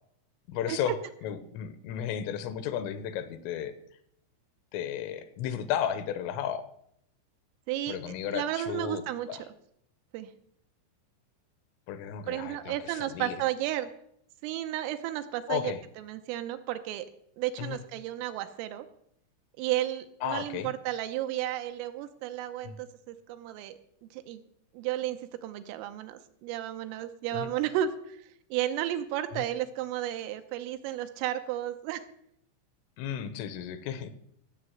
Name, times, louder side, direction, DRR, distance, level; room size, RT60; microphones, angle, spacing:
voice 1, 0.5-0.9 1.2-3.7 4.7-6.6 7.9-9.0 9.3-9.4 11.9-13.4 15.5-15.8 17.6-17.8 20.2-20.7 22.6-22.8 27.3-27.5 29.3-29.5 33.0-34.1, left 9 dB, 80° left, 11 dB, 3.3 m, -34 dB
voice 2, 7.7-8.0 8.3-9.3 10.1-10.3 12.3-13.9 14.4-17.1 17.4-18.9 19.6-23.8 24.1-24.4 24.7-28.2 28.5-32.1, right 12 dB, 85° right, 9 dB, 3.3 m, -33 dB
16.0 x 6.8 x 7.7 m, 0.71 s
omnidirectional pair, 6.0 m